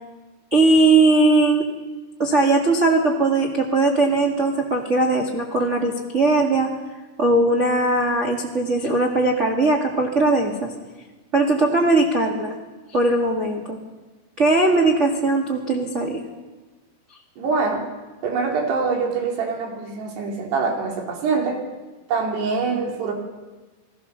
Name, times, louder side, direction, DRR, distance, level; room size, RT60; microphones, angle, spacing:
voice 1, 0.5-1.6 2.2-6.7 7.2-10.7 11.3-12.5 12.9-13.8 14.4-16.2, right 2 dB, 30° right, -1 dB, 1.4 m, -19 dB
voice 2, 17.4-17.9 18.2-21.6 22.1-23.1, right 4 dB, 85° right, 2 dB, 5.2 m, -24 dB
29.0 x 19.5 x 6.9 m, 1.2 s
omnidirectional pair, 4.7 m